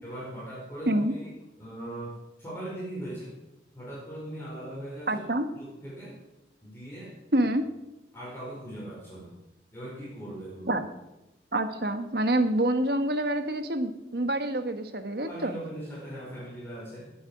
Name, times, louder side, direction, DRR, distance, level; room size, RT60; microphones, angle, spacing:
voice 1, 0.0-1.3 1.6-3.3 3.7-5.2 5.5-6.2 6.6-7.1 7.4-7.5 8.1-9.3 9.7-10.8 15.2-17.1, right 1 dB, 15° left, -6 dB, 4.8 m, -40 dB
voice 2, 5.1-5.5 7.3-7.6 10.7-10.9 11.5-15.6, right 1 dB, 60° right, 8 dB, 1.4 m, -27 dB
18.5 x 8.7 x 6.1 m, 0.95 s
head